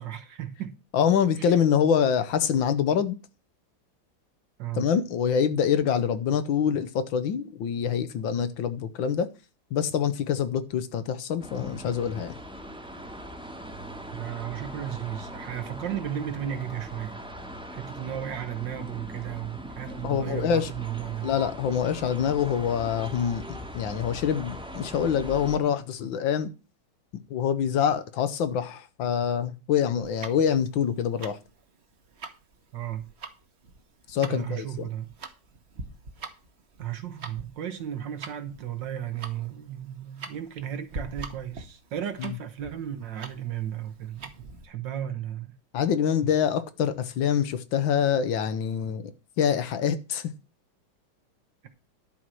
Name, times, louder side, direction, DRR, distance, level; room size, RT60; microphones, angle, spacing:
voice 1, 0.0-0.8 1.4-1.5 4.6-4.8 14.1-17.2 17.7-21.3 32.7-33.1 34.2-35.1 36.8-45.5 46.2-46.3, right 10 dB, 65° right, 1.7 m, -34 dB
voice 2, 0.9-3.2 4.7-9.3 9.7-12.4 20.0-20.7 21.2-23.4 23.7-26.5 27.3-31.4 34.1-34.9 42.2-42.3 45.7-49.1 49.4-50.3, left 8 dB, 70° left, 1.6 m, -25 dB
sound 1, 11.4-25.6, equal, 5° right, 1.1 m, -41 dB
Tick-tock, 30.0-44.7, right 4 dB, 40° right, 1.2 m, -43 dB
11.5 x 4.7 x 7.5 m
omnidirectional pair, 2.3 m